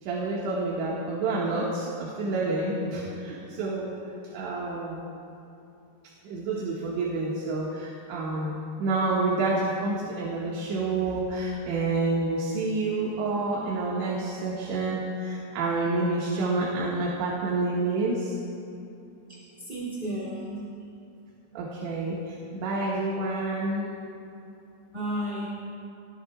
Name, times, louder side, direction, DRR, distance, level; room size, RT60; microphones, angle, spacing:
voice 1, 0.0-3.9 4.3-5.0 6.3-18.4 21.6-23.9, right 2 dB, 75° right, -5 dB, 4.0 m, -28 dB
voice 2, 19.6-20.7 24.9-25.5, right 1 dB, 15° right, -7 dB, 2.3 m, -32 dB
26.5 x 20.0 x 2.4 m, 2.9 s
omnidirectional pair, 5.5 m